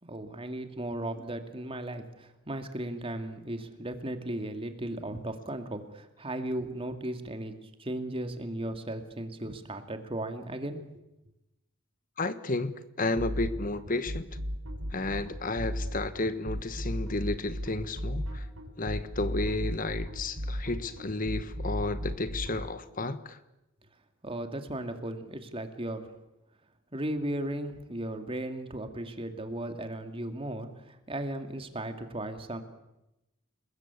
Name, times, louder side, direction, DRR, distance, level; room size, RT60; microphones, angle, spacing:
voice 1, 0.0-7.5 7.8-10.8 24.2-26.1 26.9-32.6, right 1 dB, 25° right, 2.4 m, -36 dB
voice 2, 12.2-14.2 14.9-18.5 18.8-23.4, left 2 dB, 40° left, 1.3 m, -32 dB
sound 1, 13.2-22.6, equal, 85° right, 6.5 m, -34 dB
30.0 x 21.0 x 8.4 m
head